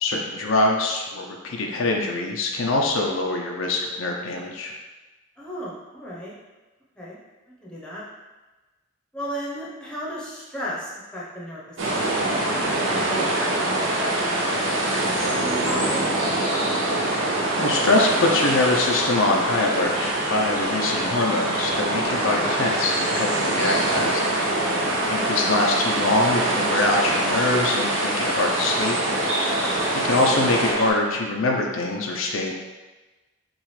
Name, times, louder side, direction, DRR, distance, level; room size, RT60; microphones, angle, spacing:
voice 1, 0.0-4.7 17.1-24.5 25.1-29.4 29.9-32.5, left 2 dB, 75° left, 0 dB, 0.6 m, -24 dB
voice 2, 5.4-6.4 7.0-7.2 7.5-8.0 9.1-12.3 12.8-16.3 24.5-24.9, equal, 5° left, -7 dB, 0.9 m, -35 dB
sound 1, 11.8-30.7, right 2 dB, 65° right, 0.6 m, -27 dB
sound 2, 11.8-30.9, equal, 90° right, 1.2 m, -27 dB
6.2 x 2.5 x 3.2 m, 1.2 s
head